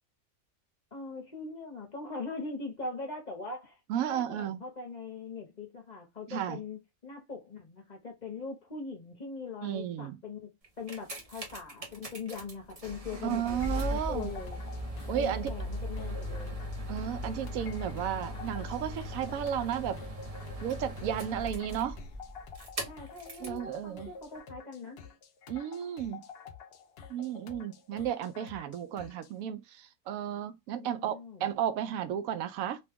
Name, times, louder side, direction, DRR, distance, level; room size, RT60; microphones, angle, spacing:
voice 1, 0.9-14.6 15.1-16.6 22.8-25.0 30.8-31.5, left 4 dB, 35° left, 0.9 m, -41 dB
voice 2, 3.9-4.6 6.3-6.6 9.6-10.2 13.2-14.3 15.1-15.5 16.9-20.0 20.6-22.0 23.4-24.1 25.5-26.2 27.1-32.8, right 9 dB, 75° right, 1.0 m, -33 dB
sound 1, 10.6-23.6 24.4-24.5, equal, 30° right, 0.7 m, -39 dB
sound 2, 13.5-29.4, left 6 dB, 65° left, 0.6 m, -50 dB
3.0 x 2.3 x 3.4 m
omnidirectional pair, 1.5 m